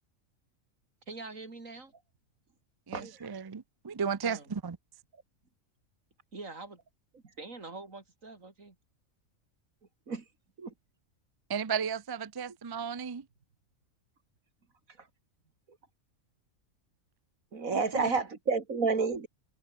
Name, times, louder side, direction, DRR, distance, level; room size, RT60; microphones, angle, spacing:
voice 1, 1.1-1.9 4.2-4.5 6.3-6.8 7.4-8.8, right 3 dB, 75° right, 4.1 m, -44 dB
voice 2, 2.9-4.8 11.5-13.3 17.7-18.2, right 6 dB, 30° right, 0.4 m, -34 dB
voice 3, 17.5-19.3, right 4 dB, 90° right, 2.9 m, -29 dB
omnidirectional pair, 1.4 m